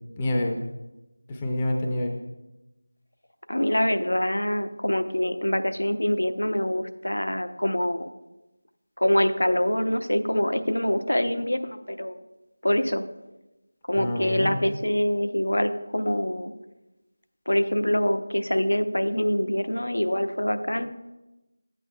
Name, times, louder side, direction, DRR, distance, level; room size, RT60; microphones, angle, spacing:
voice 1, 0.2-0.7 1.3-2.1 13.9-14.6, left 1 dB, 15° left, 1 dB, 0.5 m, -27 dB
voice 2, 3.5-8.1 9.0-12.2 12.6-13.0 13.9-16.5 17.5-20.9, left 1 dB, 75° left, 9 dB, 0.6 m, -25 dB
12.0 x 8.5 x 2.2 m, 1.0 s
figure-of-eight pair, 170°, 0 cm